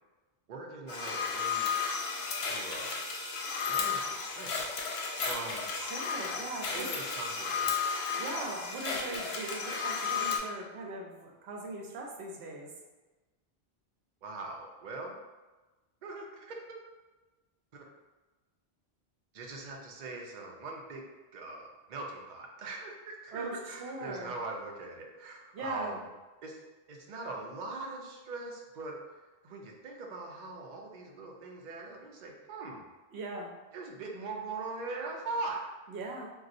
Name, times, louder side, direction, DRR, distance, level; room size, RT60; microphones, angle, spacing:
voice 1, 0.5-1.7 2.4-3.0 3.7-5.7 6.2-8.0 14.2-15.2 16.0-16.8 17.7-17.9 19.3-21.0 21.3-26.0 26.4-26.6 26.9-32.8 33.7-35.6, right 3 dB, 55° right, 0 dB, 0.5 m, -41 dB
sound 1, 0.9-10.4, left 5 dB, 75° left, 0.8 m, -33 dB
voice 2, 5.7-6.9 8.2-12.7 23.3-24.3 25.5-26.0 33.1-33.5 35.9-36.3, right 2 dB, 80° right, -1 dB, 0.9 m, -40 dB
3.9 x 2.3 x 2.5 m, 1.2 s
omnidirectional pair, 1.1 m